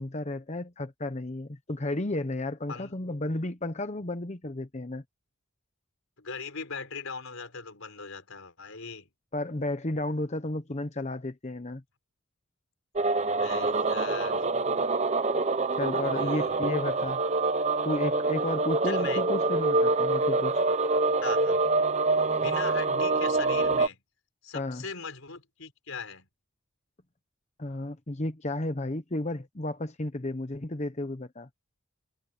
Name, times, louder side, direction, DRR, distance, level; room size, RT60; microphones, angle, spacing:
voice 1, 0.0-5.0 9.3-11.8 15.7-17.2 17.8-20.6 24.5-24.8 27.6-31.5, left 2 dB, 35° left, 0.9 m, -33 dB
voice 2, 6.2-9.1 13.4-14.5 16.0-16.6 17.0-17.2 18.8-19.2 21.2-21.6 22.4-24.0 24.4-26.3, left 5 dB, 90° left, 4.8 m, -40 dB
sound 1, 13.0-23.9, right 3 dB, 35° right, 0.8 m, -26 dB
head